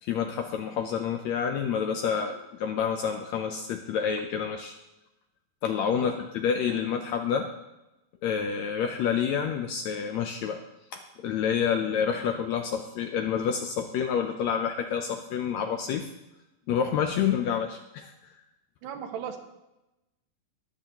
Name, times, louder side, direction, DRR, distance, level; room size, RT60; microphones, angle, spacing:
voice 1, 0.0-4.8 5.6-7.5 8.2-10.6 10.9-16.1 16.7-18.1, left 7 dB, 75° left, 5 dB, 1.6 m, -28 dB
voice 2, 18.8-19.4, right 8 dB, 80° right, 5 dB, 2.6 m, -36 dB
22.0 x 7.4 x 2.9 m, 0.96 s
omnidirectional pair, 3.8 m